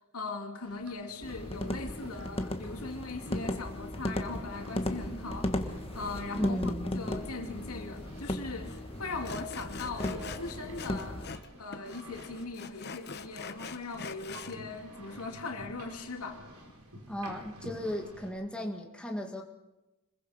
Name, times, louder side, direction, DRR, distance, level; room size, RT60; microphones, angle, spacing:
voice 1, 0.1-11.3 11.6-16.4, left 3 dB, 80° left, 3 dB, 2.8 m, -40 dB
sound 1, 0.6-18.3, equal, 75° right, 4.7 m, -50 dB
sound 2, 1.2-11.4, left 1 dB, 25° left, 1.4 m, -36 dB
voice 2, 6.4-6.9 17.1-19.4, equal, 5° left, 1 dB, 1.9 m, -35 dB
Sawing, 8.2-8.3 8.6-8.8 9.2-11.5 11.7-14.6, left 5 dB, 50° left, 1.2 m, -44 dB
25.5 x 21.5 x 5.2 m, 1.0 s
head